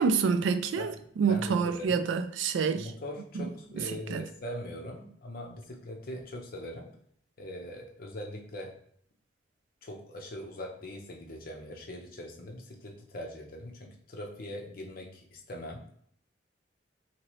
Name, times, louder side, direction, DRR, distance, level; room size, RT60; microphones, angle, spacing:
voice 1, 0.0-2.9 4.1-4.2, right 5 dB, 80° right, 0.3 m, -27 dB
voice 2, 1.3-2.1 2.8-6.9 7.4-8.7 9.8-15.8, left 1 dB, 50° left, 0.7 m, -41 dB
2.8 x 2.8 x 3.0 m
head